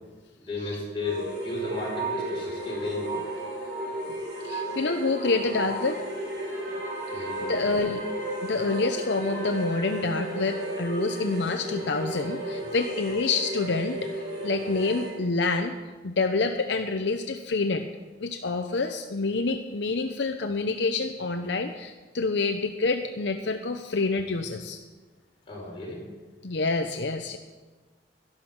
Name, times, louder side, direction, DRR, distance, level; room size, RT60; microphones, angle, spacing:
voice 1, 0.4-3.2 7.1-7.8 25.5-26.0, left 2 dB, 30° left, -4 dB, 5.1 m, -34 dB
sound 1, 1.0-15.2, right 1 dB, 60° right, 4.0 m, -33 dB
voice 2, 4.4-6.0 7.1-8.0 8.4-14.0 14.4-15.7 16.0-17.8 18.2-24.8 26.4-27.4, left 3 dB, 70° left, 6 dB, 0.7 m, -27 dB
11.5 x 11.5 x 6.0 m, 1.3 s
head